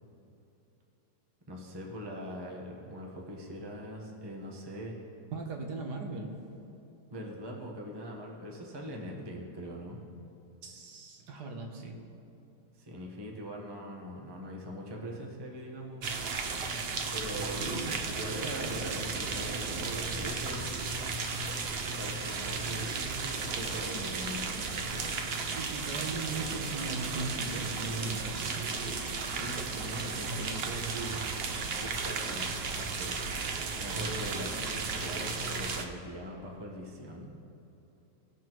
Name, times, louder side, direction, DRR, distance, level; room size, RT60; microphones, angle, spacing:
voice 1, 1.5-4.9 7.1-10.0 12.8-16.0 17.1-17.8 18.1-21.1 21.9-24.7 29.2-32.5 32.7-33.2 33.8-37.3, equal, 15° right, -1 dB, 1.0 m, -42 dB
voice 2, 5.3-6.5 10.6-12.0 25.5-28.6, right 3 dB, 70° right, 2 dB, 1.5 m, -38 dB
sound 1, 16.0-35.8, right 4 dB, 85° right, 0.5 m, -34 dB
18.0 x 6.0 x 3.0 m, 3.0 s
omnidirectional pair, 1.9 m